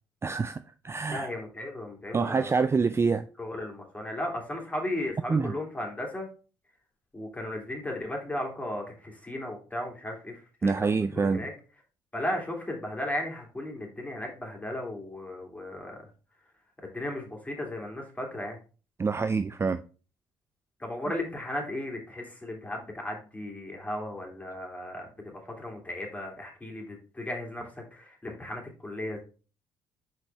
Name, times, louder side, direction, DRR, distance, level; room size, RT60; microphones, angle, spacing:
voice 1, 0.2-0.6 0.8-1.3 2.1-3.3 5.3-5.5 10.6-11.4 19.0-19.8, right 4 dB, 25° right, 0.4 m, -26 dB
voice 2, 1.1-2.7 3.4-6.3 7.1-11.5 12.1-16.1 16.8-18.6 20.8-29.2, left 1 dB, 15° left, 2.9 m, -36 dB
6.0 x 5.1 x 3.4 m
hypercardioid pair, 50°, 11 cm